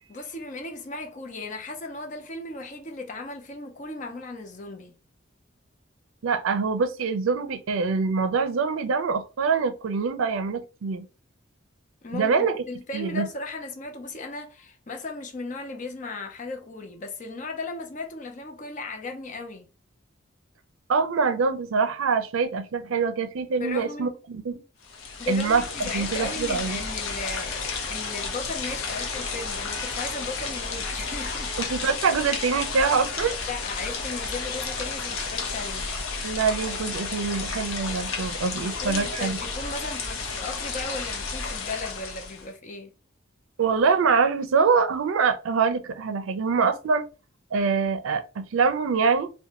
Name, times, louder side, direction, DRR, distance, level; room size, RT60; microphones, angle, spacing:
voice 1, 0.1-5.0 12.0-19.7 23.6-24.2 25.2-31.5 33.5-36.0 38.5-42.9, left 3 dB, 40° left, 0.5 m, -36 dB
voice 2, 6.2-11.1 12.1-12.6 12.9-13.3 20.9-24.6 25.3-26.8 31.6-33.3 36.2-39.4 43.6-47.0 47.5-49.3, right 5 dB, 90° right, 0.4 m, -24 dB
sound 1, 24.8-42.5, left 4 dB, 90° left, 0.7 m, -32 dB
2.5 x 2.2 x 2.8 m
head